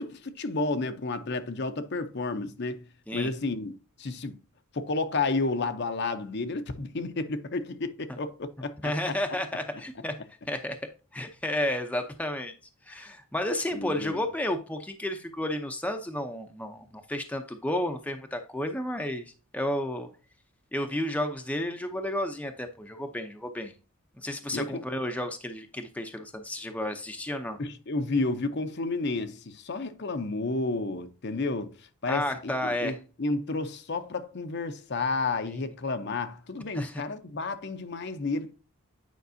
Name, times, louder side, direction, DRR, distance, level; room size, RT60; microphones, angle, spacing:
voice 1, 0.0-2.9 3.1-3.7 4.0-4.4 4.7-8.9 13.7-14.2 24.5-24.8 27.6-31.7 32.0-38.5, left 3 dB, 50° left, 0.7 m, -31 dB
voice 2, 8.8-10.1 10.5-10.8 11.1-12.5 12.9-20.1 20.7-23.7 24.2-27.6 32.1-33.0 35.5-35.6 36.7-37.0, left 1 dB, 5° left, 0.6 m, -32 dB
9.3 x 5.2 x 2.7 m
head